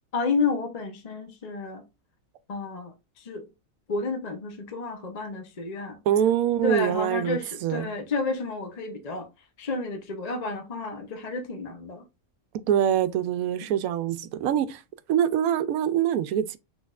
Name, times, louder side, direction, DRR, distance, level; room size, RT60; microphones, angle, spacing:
voice 1, 0.1-1.8 2.5-3.5 3.9-6.0 6.6-9.3 9.6-12.0, left 4 dB, 40° left, 0.6 m, -31 dB
voice 2, 6.1-7.9 12.7-14.8 15.1-16.6, right 10 dB, 80° right, 1.0 m, -24 dB
6.3 x 3.4 x 2.4 m
omnidirectional pair, 1.5 m